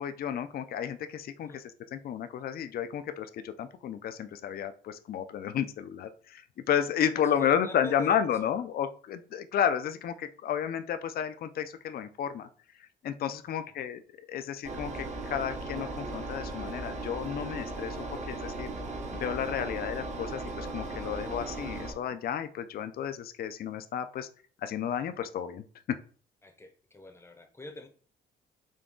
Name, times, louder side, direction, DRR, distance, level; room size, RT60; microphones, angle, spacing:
voice 1, 0.0-1.6 1.9-6.4 6.7-12.5 13.0-14.0 14.3-18.7 19.1-24.3 24.6-25.6, left 9 dB, 50° left, 9 dB, 0.4 m, -32 dB
voice 2, 7.1-8.5 13.4-13.6 26.4-27.9, left 1 dB, 10° left, 5 dB, 0.7 m, -45 dB
Engine, 14.6-21.9, right 2 dB, 35° right, 0.8 m, -37 dB
3.8 x 2.2 x 3.6 m, 0.42 s
cardioid pair, 90°, 20 cm